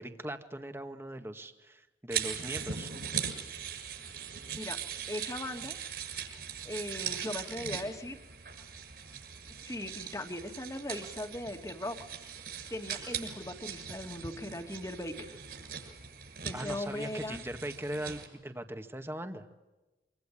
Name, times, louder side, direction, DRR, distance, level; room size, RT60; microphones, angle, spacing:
voice 1, 0.0-2.9 16.5-19.5, right 1 dB, 15° right, 7 dB, 2.0 m, -40 dB
sound 1, 2.1-18.3, right 8 dB, 60° right, 7.3 m, -40 dB
voice 2, 5.1-5.8 6.7-8.2 9.6-12.0 12.7-15.3 16.4-17.4, left 1 dB, 20° left, 5 dB, 2.4 m, -39 dB
26.0 x 25.5 x 8.8 m, 1.1 s
head